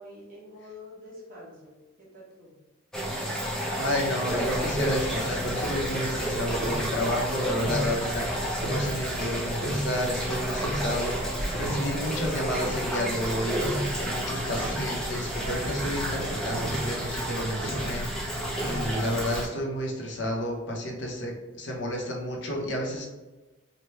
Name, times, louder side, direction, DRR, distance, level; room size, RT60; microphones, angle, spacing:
voice 1, 0.0-2.6, left 1 dB, 40° right, -6 dB, 1.3 m, -47 dB
sound 1, 2.9-19.5, right 1 dB, 5° left, 0.6 m, -31 dB
voice 2, 3.7-11.1 11.5-23.1, left 1 dB, 55° left, -1 dB, 0.7 m, -31 dB
Tick-tock, 4.2-19.5, equal, 80° right, 0.8 m, -35 dB
3.3 x 2.2 x 4.3 m, 1.1 s
head